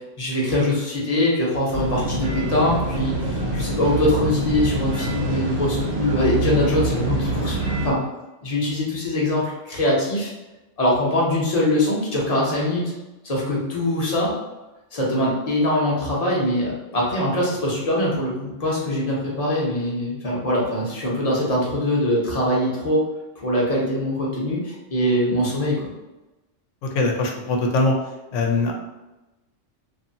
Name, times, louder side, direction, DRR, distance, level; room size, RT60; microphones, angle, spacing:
voice 1, 0.2-8.0 8.4-10.3 10.8-12.9 13.2-14.3 14.9-23.0 23.4-25.9, left 1 dB, 35° left, -4 dB, 0.8 m, -22 dB
sound 1, 1.7-7.9, right 3 dB, 65° right, 1.0 m, -25 dB
voice 2, 26.9-27.9 28.3-28.7, left 2 dB, 80° left, 1 dB, 0.9 m, -21 dB
2.6 x 2.6 x 2.7 m, 1.0 s
omnidirectional pair, 1.3 m